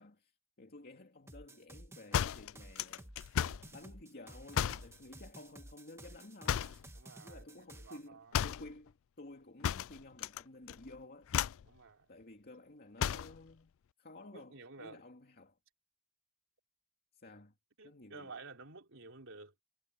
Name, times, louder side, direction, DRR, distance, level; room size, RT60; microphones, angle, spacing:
voice 1, 0.0-3.1 3.7-6.8 7.2-11.3 12.1-13.7 14.0-15.6 17.1-17.5 17.8-18.3, left 2 dB, 45° left, 2.4 m, -53 dB
sound 1, 1.3-8.0, right 1 dB, 15° right, 1.7 m, -53 dB
sound 2, 2.1-3.7 4.5-4.9 6.5-6.9 8.3-8.7 9.6-10.4 10.7-11.0 11.3-11.7 13.0-13.4, left 9 dB, 65° left, 0.4 m, -34 dB
voice 2, 6.9-8.4 11.6-12.1 14.3-15.0 17.8-19.5, right 3 dB, 65° right, 3.6 m, -52 dB
head